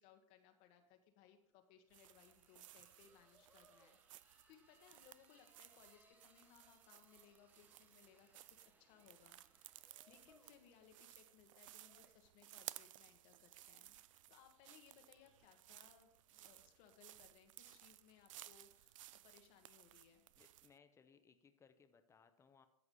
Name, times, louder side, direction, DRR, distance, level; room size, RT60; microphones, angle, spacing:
voice 1, 0.0-20.3, left 9 dB, 45° left, 5 dB, 1.3 m, -67 dB
sound 1, 0.8-0.9 1.2-20.0, right 1 dB, 10° right, 1.2 m, -75 dB
sound 2, 1.9-20.8, right 14 dB, 65° right, 0.4 m, -59 dB
sound 3, 7.2-19.6, right 1 dB, 85° right, 3.8 m, -86 dB
voice 2, 20.4-22.7, left 6 dB, 15° left, 9 dB, 0.9 m, -68 dB
14.0 x 4.8 x 5.5 m, 0.80 s
hypercardioid pair, 120°, 18 cm